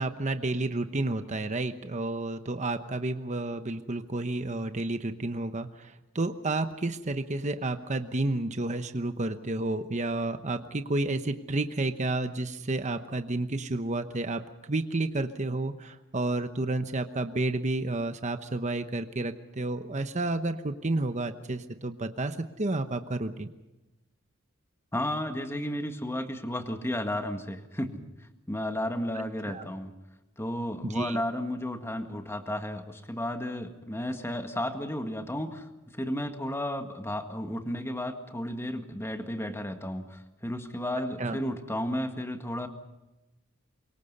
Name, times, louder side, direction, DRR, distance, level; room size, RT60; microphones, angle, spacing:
voice 1, 0.0-14.4 14.7-23.5 29.1-29.6 30.8-31.2 41.2-41.4, right 2 dB, 35° right, 9 dB, 1.0 m, -31 dB
voice 2, 24.9-29.9 30.4-42.7, left 1 dB, 10° left, 6 dB, 1.8 m, -33 dB
25.0 x 23.0 x 5.5 m, 1.0 s
head